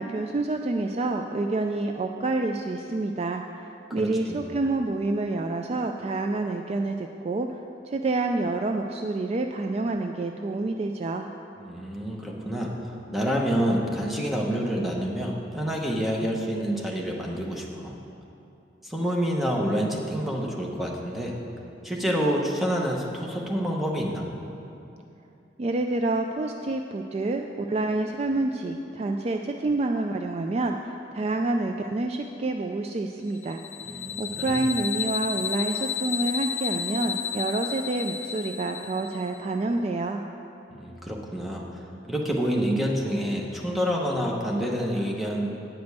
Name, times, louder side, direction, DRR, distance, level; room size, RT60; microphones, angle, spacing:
voice 1, 0.0-3.4 3.9-11.3 25.6-33.6 34.2-40.2, right 2 dB, 35° right, 4 dB, 0.3 m, -28 dB
voice 2, 4.0-4.4 11.6-17.9 18.8-21.3 21.8-24.2 33.8-34.6 40.7-41.8 42.1-45.5, equal, ahead, -2 dB, 1.0 m, -28 dB
sound 1, 33.4-39.4, left 8 dB, 40° left, 0.5 m, -32 dB
9.1 x 5.2 x 8.0 m, 2.8 s
head